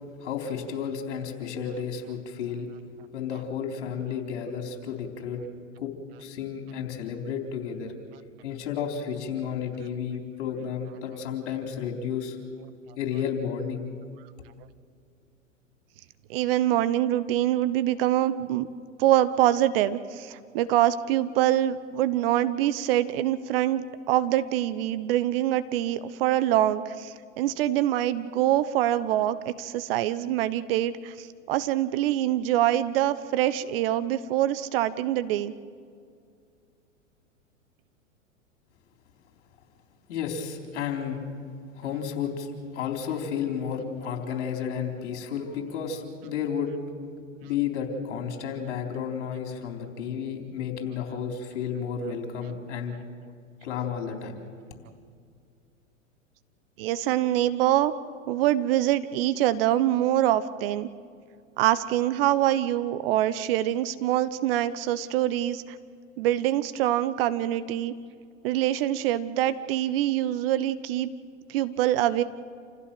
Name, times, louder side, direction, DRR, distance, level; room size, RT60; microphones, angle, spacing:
voice 1, 0.2-2.7 3.1-5.4 5.8-5.9 6.2-7.9 8.4-12.4 13.0-13.9 40.1-41.2 41.7-46.8 47.4-53.0 53.6-54.4, left 7 dB, 55° left, 3 dB, 4.1 m, -32 dB
voice 2, 16.3-18.7 19.0-35.5 56.8-57.9 58.3-60.9 61.6-65.8 66.2-67.9 68.4-71.1 71.5-72.2, right 13 dB, 45° right, 14 dB, 1.0 m, -25 dB
28.0 x 15.5 x 7.8 m, 2.3 s
figure-of-eight pair, 105°, 40 cm